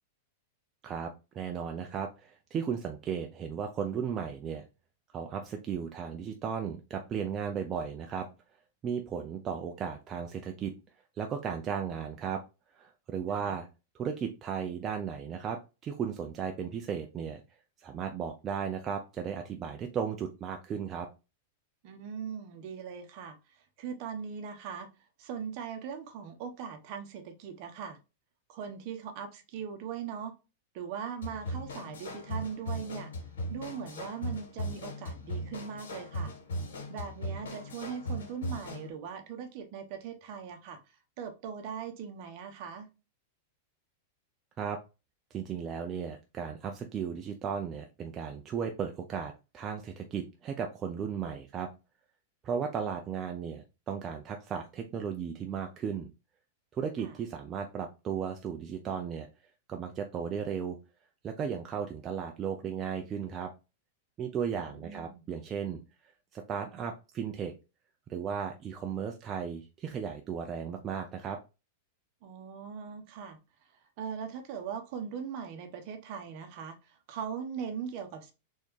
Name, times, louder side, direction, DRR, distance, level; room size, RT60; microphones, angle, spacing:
voice 1, 0.8-4.6 5.1-8.3 8.8-10.7 11.2-12.4 12.7-13.7 14.0-17.4 17.8-21.1 44.6-44.8 45.3-51.7 52.4-56.1 56.7-59.3 59.7-60.8 61.2-63.5 64.2-65.8 66.3-67.5 68.1-71.4, right 7 dB, 25° right, 0.5 m, -35 dB
voice 2, 21.8-23.4 23.8-24.9 25.2-28.0 28.5-30.3 30.7-33.1 33.5-36.3 36.9-40.8 41.2-42.9 57.0-57.1 64.5-65.2 72.2-73.4 74.0-78.3, right 7 dB, 50° right, 1.1 m, -40 dB
sound 1, 31.2-38.9, equal, 90° left, 2.4 m, -38 dB
4.3 x 3.6 x 3.2 m
supercardioid pair, 140°, 0 cm